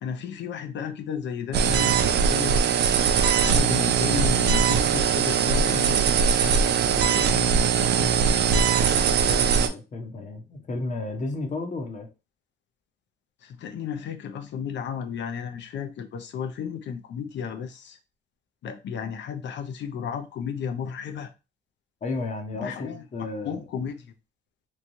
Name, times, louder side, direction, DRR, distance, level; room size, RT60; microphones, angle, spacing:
voice 1, 0.0-2.6 3.4-8.2 13.4-18.0 18.6-21.3 22.6-23.0 23.4-24.1, left 7 dB, 65° left, 0.6 m, -33 dB
sound 1, 1.5-9.7, right 7 dB, 60° right, 0.4 m, -21 dB
voice 2, 9.2-12.1 22.0-23.6, left 2 dB, 40° left, 0.9 m, -33 dB
3.1 x 2.2 x 2.6 m
cardioid pair, 90°, 20 cm